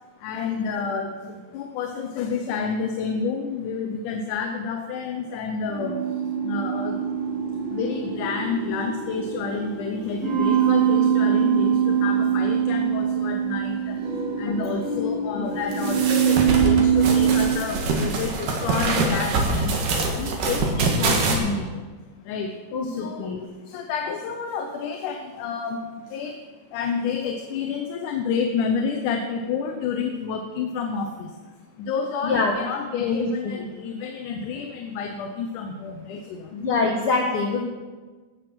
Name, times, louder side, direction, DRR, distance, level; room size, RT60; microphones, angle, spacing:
voice 1, 0.2-7.2 7.7-14.1 14.3-21.9 22.2-22.6 22.8-31.4 31.8-36.6, left 5 dB, 80° left, 4 dB, 2.4 m, -30 dB
sound 1, 5.6-17.5, right 8 dB, 60° right, 3.0 m, -23 dB
sound 2, 15.7-21.4, right 3 dB, 85° right, 3.3 m, -24 dB
voice 2, 22.7-23.4 32.2-32.5 33.0-33.7 36.5-37.6, left 4 dB, 60° left, 1 dB, 1.5 m, -25 dB
17.0 x 6.8 x 6.1 m, 1.3 s
omnidirectional pair, 3.6 m